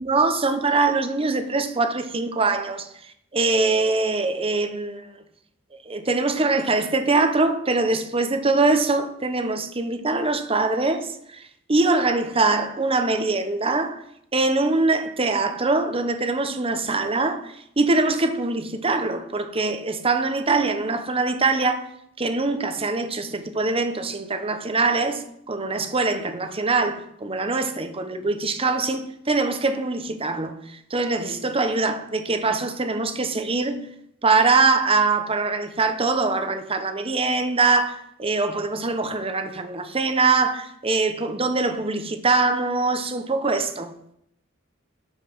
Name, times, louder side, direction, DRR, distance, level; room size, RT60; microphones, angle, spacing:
voice 1, 0.0-2.9 3.3-5.1 5.8-14.0 14.3-21.9 22.2-33.8 34.2-43.9, right 3 dB, 30° right, 1.0 m, -23 dB
12.5 x 5.4 x 5.5 m
head